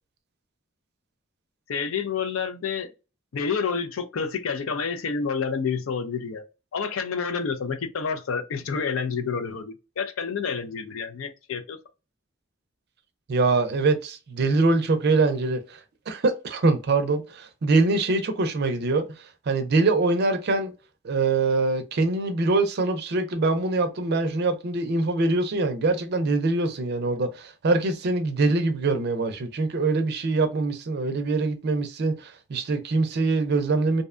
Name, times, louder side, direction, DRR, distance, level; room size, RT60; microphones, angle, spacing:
voice 1, 1.7-2.9 3.3-6.4 6.7-11.8, left 5 dB, 75° left, 0.5 m, -29 dB
voice 2, 13.3-15.8 16.1-20.7 21.0-34.0, right 3 dB, 50° right, 0.4 m, -24 dB
2.6 x 2.1 x 2.4 m
head